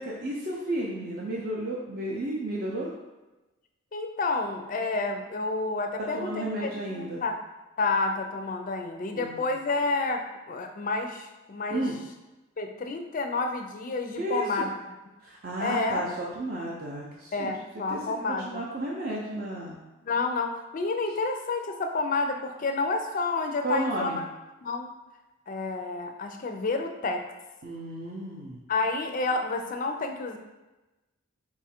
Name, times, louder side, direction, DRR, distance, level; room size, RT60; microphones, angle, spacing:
voice 1, 0.0-2.9 6.0-7.2 9.0-9.5 11.7-11.9 14.2-14.6 15.2-17.5 17.9-18.0 18.5-19.8 23.6-24.2 27.6-28.6, right 1 dB, 40° right, -4 dB, 0.5 m, -33 dB
voice 2, 3.9-7.3 7.8-11.8 12.6-14.7 15.6-16.1 17.3-18.6 20.0-24.2 24.6-24.9 25.5-27.2 28.7-30.4, left 3 dB, 35° left, 5 dB, 0.4 m, -29 dB
4.6 x 2.4 x 4.2 m, 1.1 s
head